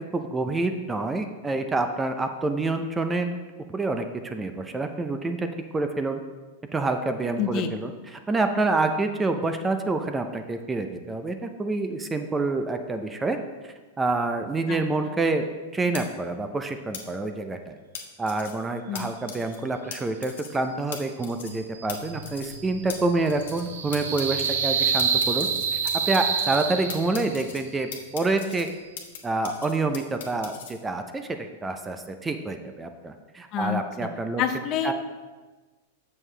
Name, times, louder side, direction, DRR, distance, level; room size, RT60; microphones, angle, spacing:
voice 1, 0.1-3.4 3.7-5.5 5.7-6.2 6.7-13.4 13.6-15.4 15.7-17.7 18.2-25.8 26.1-28.7 29.2-34.4 34.8-34.9, right 3 dB, 15° right, 7 dB, 0.5 m, -27 dB
voice 2, 7.4-7.7 14.7-15.1 18.9-19.1 33.5-34.1 34.4-34.9, left 8 dB, 40° left, 7 dB, 0.6 m, -28 dB
sound 1, 15.9-16.0 16.9-17.0 17.9-18.5 18.9-19.0 19.3-19.6 19.9-20.0 20.2-20.6 20.9-21.0 21.2-21.6 21.9-22.0 22.2-22.6 22.9-23.0 23.3-23.7 23.9-24.5 25.0-26.6 26.9-27.6 27.9-29.2 29.4-30.7, left 8 dB, 75° left, 1.2 m, -38 dB
sound 2, 21.5-27.4, right 6 dB, 75° right, 0.8 m, -28 dB
7.0 x 6.3 x 3.3 m, 1.3 s
hypercardioid pair, 130°, 0 cm